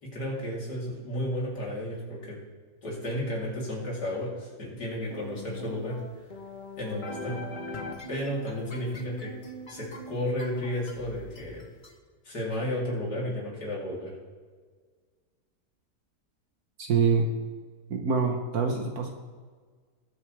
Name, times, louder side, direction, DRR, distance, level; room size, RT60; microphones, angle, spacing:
voice 1, 0.0-2.4 2.8-6.0 6.8-7.4 8.1-9.3 9.7-11.6 12.2-14.1, left 1 dB, 75° left, -5 dB, 4.0 m, -33 dB
sound 1, 5.1-11.9, left 1 dB, 30° left, 1.1 m, -41 dB
voice 2, 16.8-17.3 17.9-19.1, right 5 dB, 65° right, 3 dB, 1.5 m, -25 dB
20.5 x 8.0 x 3.4 m, 1.5 s
omnidirectional pair, 1.8 m